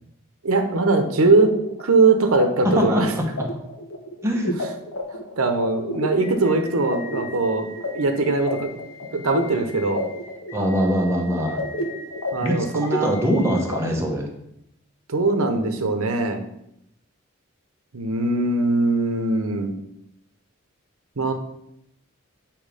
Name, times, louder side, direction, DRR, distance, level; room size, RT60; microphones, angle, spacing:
voice 1, 0.4-1.5 1.8-3.1 5.1-8.7 9.1-10.0 12.3-13.2 15.1-16.4 17.9-19.7 21.2-21.3, right 3 dB, 90° right, 5 dB, 0.8 m, -21 dB
sound 1, 1.0-13.8, left 1 dB, 70° left, 1.0 m, -32 dB
voice 2, 2.6-3.0 3.4-3.5 4.2-4.5 10.5-11.6 12.4-12.7 12.9-14.3, equal, 15° right, -1 dB, 1.0 m, -22 dB
8.3 x 3.0 x 5.0 m, 0.78 s
head